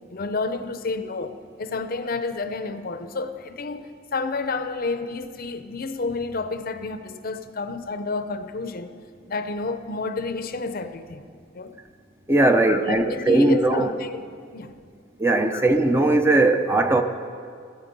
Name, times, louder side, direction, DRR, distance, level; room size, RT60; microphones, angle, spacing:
voice 1, 0.1-1.3 1.6-8.9 9.3-11.3 11.5-11.8 12.6-14.3 14.5-14.7 15.5-15.6, left 3 dB, 50° left, 0.7 m, -30 dB
voice 2, 12.3-13.9 15.2-17.0, right 2 dB, 15° right, 0.6 m, -19 dB
16.5 x 13.5 x 5.4 m
head